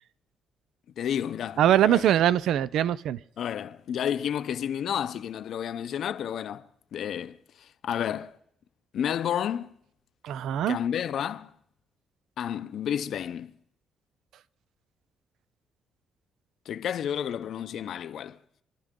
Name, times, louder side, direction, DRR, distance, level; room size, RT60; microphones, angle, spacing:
voice 1, 1.0-2.1 3.4-8.4 8.9-9.7 10.7-11.5 12.4-13.5 16.7-18.4, left 9 dB, 70° left, 0.7 m, -31 dB
voice 2, 1.6-3.2 10.2-10.8, right 11 dB, 80° right, 0.5 m, -22 dB
26.5 x 12.0 x 3.8 m
cardioid pair, 90°, 0 cm